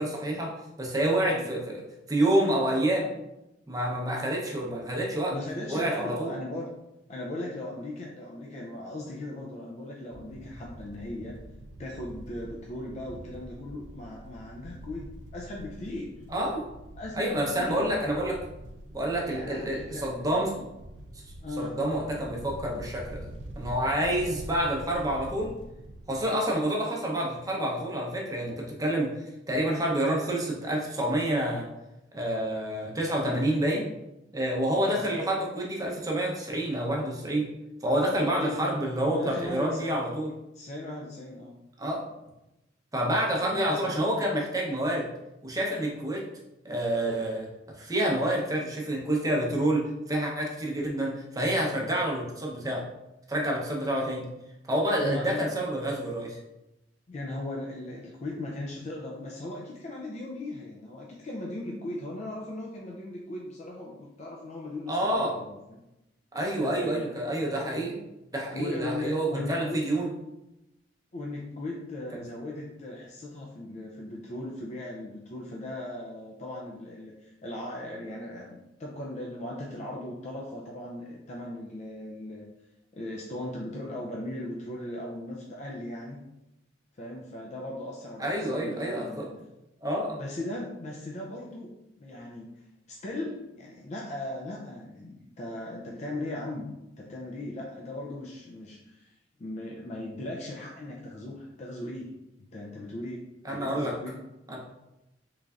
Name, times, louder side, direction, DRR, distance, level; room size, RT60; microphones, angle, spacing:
voice 1, 0.0-3.1 3.7-5.3 5.7-6.3 16.3-16.6 17.1-18.4 18.9-20.5 21.6-23.2 23.6-25.5 26.1-29.2 29.5-31.7 32.1-33.9 34.3-37.5 37.8-40.3 41.8-42.0 42.9-45.1 45.4-46.3 46.6-52.8 53.3-54.3 54.7-56.4 64.9-65.4 66.3-68.1 68.3-70.1 88.2-89.3 89.8-90.2 103.4-104.0 104.5-104.6, right 1 dB, 20° right, -2 dB, 0.7 m, -28 dB
voice 2, 5.3-6.7 7.1-11.4 11.8-16.1 17.0-17.9 19.2-20.6 21.4-21.8 34.8-35.0 38.3-38.8 39.0-40.0 40.5-41.5 43.5-43.9 55.0-55.4 57.1-65.8 66.6-67.1 68.5-69.8 71.1-82.5 82.9-86.2 87.0-89.3 90.2-91.7 92.0-92.5 92.9-96.7 97.0-99.1 99.4-102.1 102.5-103.2 103.5-104.2, left 1 dB, 40° left, -2 dB, 0.4 m, -38 dB
sound 1, 10.1-26.3, right 1 dB, 75° right, 0.4 m, -45 dB
3.8 x 3.2 x 2.4 m, 0.92 s
head